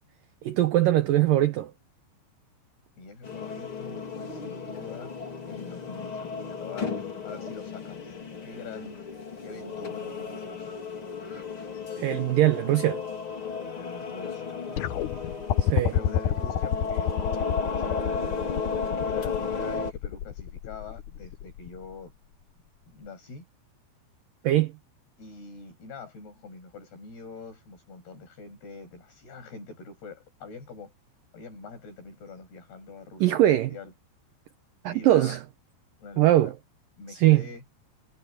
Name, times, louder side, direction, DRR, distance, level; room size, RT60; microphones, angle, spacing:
voice 1, 0.4-1.7 12.0-13.0 15.7-15.9 24.4-24.7 33.2-33.7 34.8-35.4 36.2-36.5 37.1-37.4, right 14 dB, 80° right, 2.0 m, -21 dB
voice 2, 3.0-5.1 5.5-6.9 7.3-8.2 8.4-9.0 9.4-10.8 13.5-15.4 15.9-18.4 19.1-22.1 22.9-23.5 25.2-30.9 31.3-33.9 34.9-35.4 36.0-36.5 37.0-37.6, left 4 dB, 65° left, 9.3 m, -44 dB
sound 1, 3.2-19.9, left 5 dB, 30° left, 4.1 m, -34 dB
sound 2, 14.8-21.9 23.1-23.2, left 10 dB, 80° left, 1.8 m, -28 dB
omnidirectional pair, 5.0 m